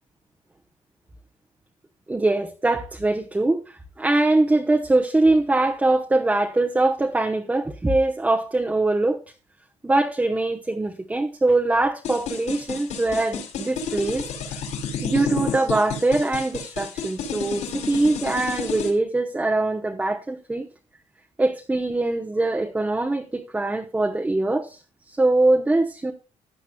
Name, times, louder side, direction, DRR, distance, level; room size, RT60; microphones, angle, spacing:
voice 1, 2.1-9.2 9.8-14.3 15.0-20.7 21.4-24.8 25.1-26.1, right 2 dB, 10° right, 1.0 m, -22 dB
sound 1, 12.0-18.9, left 5 dB, 70° left, 5.2 m, -30 dB
16.0 x 10.0 x 2.3 m
cardioid pair, 130°, 13 cm